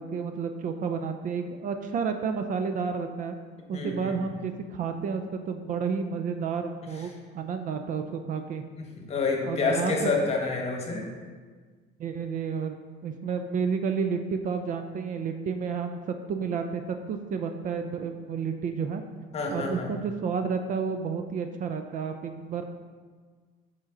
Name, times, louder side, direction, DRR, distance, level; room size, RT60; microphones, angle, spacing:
voice 1, 0.0-3.4 3.7-8.6 9.4-10.1 12.0-19.0 19.5-22.6, right 6 dB, 45° right, 7 dB, 0.4 m, -31 dB
voice 2, 3.7-4.1 8.8-11.0 19.3-19.9, left 3 dB, 35° left, 1 dB, 1.1 m, -28 dB
7.3 x 4.4 x 3.7 m, 1.5 s
cardioid pair, 130°, 19 cm